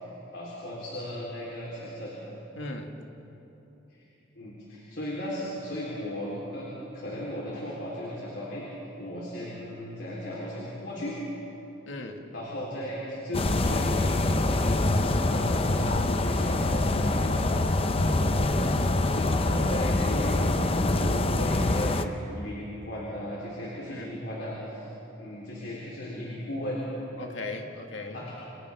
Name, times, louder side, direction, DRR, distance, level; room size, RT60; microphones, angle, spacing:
voice 1, 0.3-2.1 3.9-4.0 4.4-6.7 6.9-8.6 9.0-11.2 12.3-24.9 25.2-26.8 28.1-28.3, left 1 dB, 65° left, -5 dB, 3.8 m, -36 dB
voice 2, 2.6-3.0 11.9-12.3 19.2-19.7 23.9-24.1 27.2-28.3, left 2 dB, 90° left, 3 dB, 1.9 m, -38 dB
sound 1, 13.3-22.0, left 2 dB, 30° left, 0.7 m, -25 dB
29.5 x 27.0 x 3.6 m, 3.0 s
head